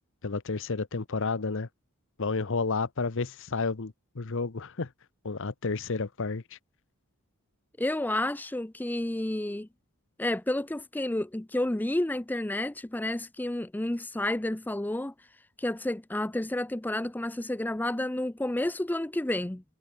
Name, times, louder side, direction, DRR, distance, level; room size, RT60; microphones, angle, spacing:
voice 1, 0.2-1.7 2.2-4.9 5.2-6.6, left 4 dB, 60° left, 0.9 m, -31 dB
voice 2, 7.8-9.7 10.2-15.1 15.6-19.6, left 1 dB, 10° left, 0.4 m, -30 dB
head